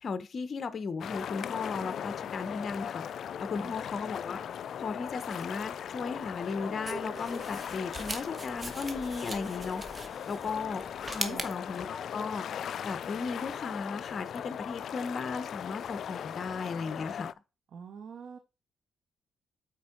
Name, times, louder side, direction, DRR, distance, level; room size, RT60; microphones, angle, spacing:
voice 1, 0.0-3.0 3.4-4.4 4.8-10.8 11.1-12.4 12.8-17.3, left 5 dB, 45° left, 1.0 m, -36 dB
sound 1, 1.0-17.3, left 9 dB, 60° left, 0.3 m, -39 dB
sound 2, 5.3-11.6, right 2 dB, 25° right, 1.3 m, -41 dB
voice 2, 17.7-18.4, right 7 dB, 60° right, 0.9 m, -44 dB
8.3 x 4.6 x 4.5 m
cardioid pair, 90°, 0 cm